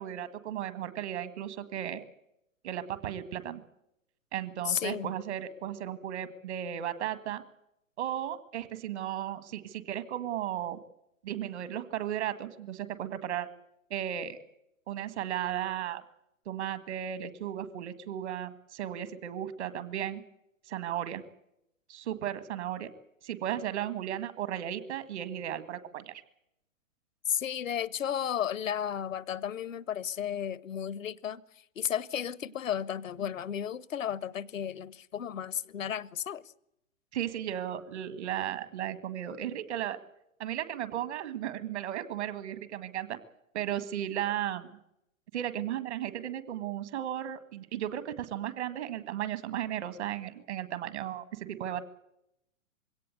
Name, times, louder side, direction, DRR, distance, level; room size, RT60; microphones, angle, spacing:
voice 1, 0.0-2.1 2.6-3.6 4.3-7.4 8.0-10.8 11.2-13.5 13.9-14.4 14.9-16.0 16.5-20.2 20.7-21.2 21.9-22.9 23.2-26.2 37.1-40.0 40.4-43.2 43.5-44.7 45.3-51.8, right 11 dB, 55° right, 1.9 m, -35 dB
voice 2, 4.6-5.1 27.3-31.4 31.8-36.4, left 9 dB, 70° left, 0.9 m, -33 dB
22.0 x 17.0 x 8.0 m
figure-of-eight pair, 115°, 40 cm